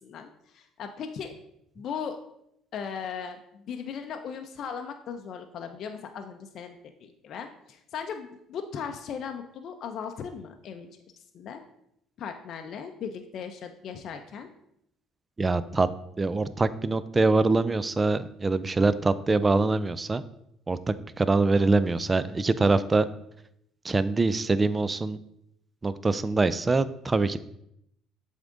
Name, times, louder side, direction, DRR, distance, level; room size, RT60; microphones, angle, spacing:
voice 1, 0.0-1.3 1.8-2.2 2.7-10.9 11.3-11.6 12.2-14.5, left 7 dB, 60° left, 5 dB, 0.5 m, -38 dB
voice 2, 15.4-15.9 16.2-20.2 20.7-23.1 23.8-25.2 25.8-27.4, right 3 dB, 25° right, 15 dB, 0.4 m, -24 dB
7.4 x 3.6 x 3.8 m, 0.77 s
supercardioid pair, 85°, 0 cm